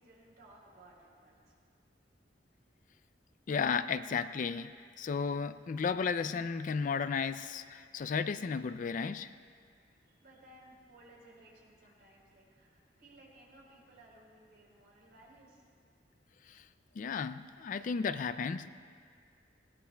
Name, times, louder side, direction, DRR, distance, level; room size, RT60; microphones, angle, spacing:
voice 1, 0.0-1.5 9.6-15.7, right 1 dB, 65° right, -3 dB, 3.8 m, -59 dB
voice 2, 3.5-4.7 5.0-9.3 16.5-16.7 17.0-18.7, left 5 dB, 45° left, 13 dB, 0.3 m, -34 dB
21.0 x 17.5 x 2.3 m, 2.1 s
head